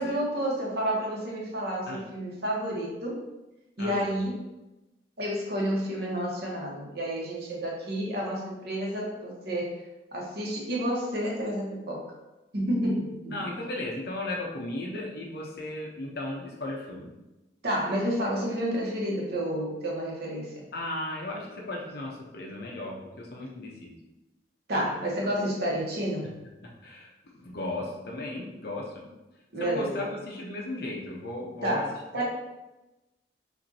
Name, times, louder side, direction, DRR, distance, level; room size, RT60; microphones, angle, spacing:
voice 1, 0.0-3.3 3.8-4.4 5.2-9.7 10.1-12.0 12.5-13.4 17.6-20.6 24.7-26.3 29.5-30.0 31.6-32.2, equal, 60° right, -3 dB, 1.1 m, -30 dB
voice 2, 3.8-4.1 13.3-17.1 20.7-24.0 26.6-29.0 29.6-31.8 32.1-32.2, left 1 dB, 55° left, -1 dB, 0.8 m, -36 dB
6.1 x 2.6 x 2.7 m, 1.0 s
head